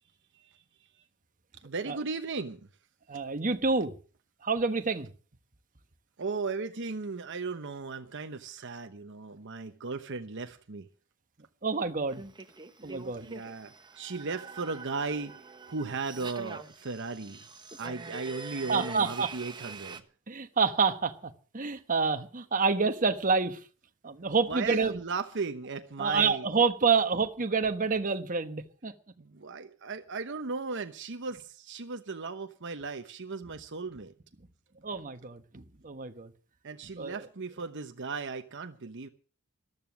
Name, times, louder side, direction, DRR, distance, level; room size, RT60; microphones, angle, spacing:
voice 1, 1.6-2.7 6.2-10.9 13.2-17.5 17.8-20.0 24.5-26.5 29.2-34.1 36.6-39.1, right 4 dB, 55° right, 0.9 m, -36 dB
voice 2, 3.1-3.9 4.4-5.1 11.6-12.2 12.8-13.3 18.7-19.3 20.3-23.6 24.0-25.0 26.0-28.9 34.8-36.3 37.0-37.2, right 4 dB, 35° right, 1.2 m, -28 dB
sound 1, 12.1-20.0, right 4 dB, 20° right, 1.1 m, -44 dB
14.5 x 12.5 x 6.1 m
head